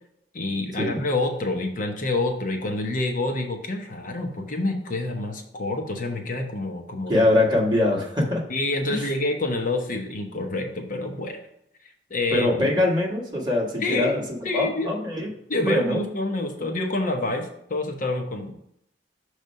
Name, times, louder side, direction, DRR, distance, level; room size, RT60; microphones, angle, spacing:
voice 1, 0.3-7.2 8.5-11.4 12.1-12.7 13.8-14.2 14.4-14.9 15.5-18.5, left 2 dB, 50° left, 3 dB, 0.8 m, -27 dB
voice 2, 7.1-8.4 8.9-9.0 12.3-14.2 14.5-15.3 15.6-16.0, left 2 dB, 25° right, -2 dB, 1.6 m, -23 dB
6.4 x 3.3 x 5.5 m, 0.75 s
head